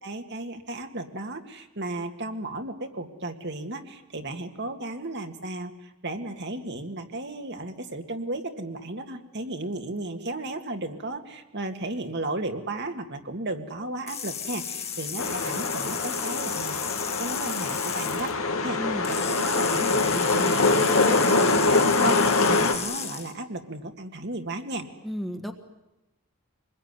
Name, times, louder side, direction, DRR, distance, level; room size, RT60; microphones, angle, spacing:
voice 1, 0.0-18.3 18.6-18.8 19.1-24.9, right 2 dB, 50° right, 6 dB, 2.0 m, -34 dB
sound 1, 14.1-18.3 19.0-23.3, left 7 dB, 30° left, 2.3 m, -33 dB
sound 2, 15.2-22.7, left 3 dB, 80° left, 2.4 m, -24 dB
voice 2, 18.7-19.1 25.0-25.5, equal, ahead, 5 dB, 1.6 m, -33 dB
26.5 x 21.0 x 9.7 m, 0.95 s
head